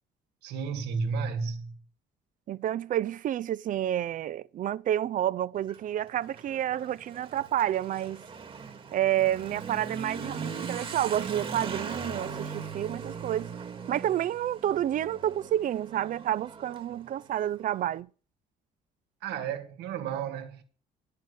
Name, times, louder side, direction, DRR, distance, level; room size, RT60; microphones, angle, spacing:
voice 1, 0.4-1.7 19.2-20.6, right 6 dB, 80° right, 2.1 m, -32 dB
voice 2, 2.5-8.2 8.9-13.5 13.9-18.1, right 12 dB, 50° right, 0.6 m, -29 dB
Motorcycle / Accelerating revving vroom, 5.5-17.9, right 5 dB, 30° right, 1.8 m, -40 dB
11.5 x 6.6 x 8.2 m
cardioid pair, 110°, 17 cm